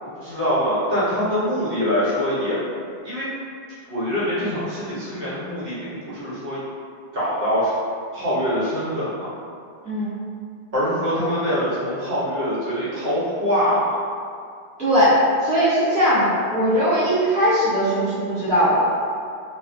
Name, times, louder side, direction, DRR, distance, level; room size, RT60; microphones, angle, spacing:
voice 1, 0.0-2.6 3.0-3.2 3.9-6.6 7.1-7.7 8.1-9.3 10.7-13.8, equal, 60° right, -10 dB, 1.0 m, -24 dB
voice 2, 14.8-18.9, equal, 10° left, -13 dB, 0.5 m, -19 dB
2.3 x 2.1 x 2.5 m, 2.3 s
omnidirectional pair, 1.1 m